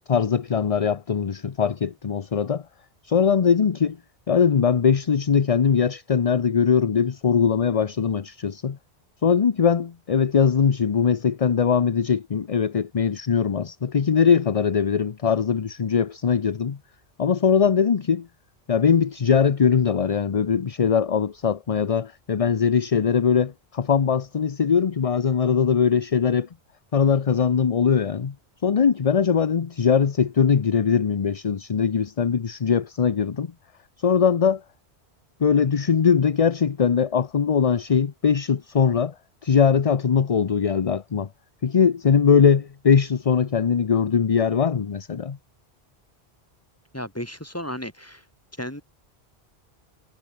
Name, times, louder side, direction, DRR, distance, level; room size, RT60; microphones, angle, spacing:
voice 1, 0.1-2.6 3.0-4.0 4.3-8.8 9.2-16.8 17.2-18.3 18.7-26.5 26.9-28.3 28.6-33.5 34.0-34.6 35.4-39.1 39.4-41.3 41.6-45.4, left 6 dB, 40° left, 0.7 m, -21 dB
voice 2, 46.9-48.2 48.6-48.8, equal, 15° left, 5.0 m, -33 dB
omnidirectional pair, 1.1 m